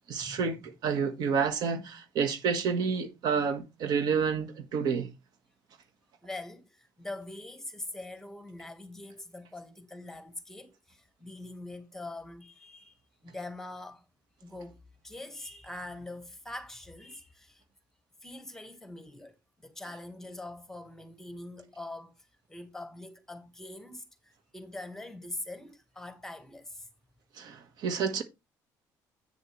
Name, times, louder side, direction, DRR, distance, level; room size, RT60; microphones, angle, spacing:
voice 1, 0.1-5.1 27.4-28.2, right 6 dB, 65° right, 1.4 m, -29 dB
voice 2, 6.2-13.0 13.2-14.0 14.4-14.7 15.0-17.6 18.2-22.1 22.5-26.9, left 2 dB, 5° left, 1.5 m, -43 dB
8.7 x 6.8 x 3.1 m
cardioid pair, 125°, 7 cm